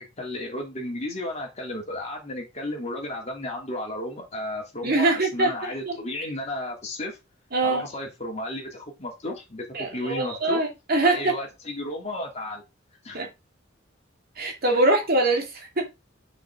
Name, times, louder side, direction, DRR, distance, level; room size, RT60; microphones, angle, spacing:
voice 1, 0.2-7.2 7.6-10.6 11.0-12.6 13.0-13.2, left 1 dB, 35° left, 2.9 m, -33 dB
voice 2, 4.8-6.0 7.5-7.9 9.7-11.3 13.1-13.3 14.4-15.9, right 2 dB, 50° right, 2.4 m, -23 dB
6.5 x 6.2 x 3.8 m
head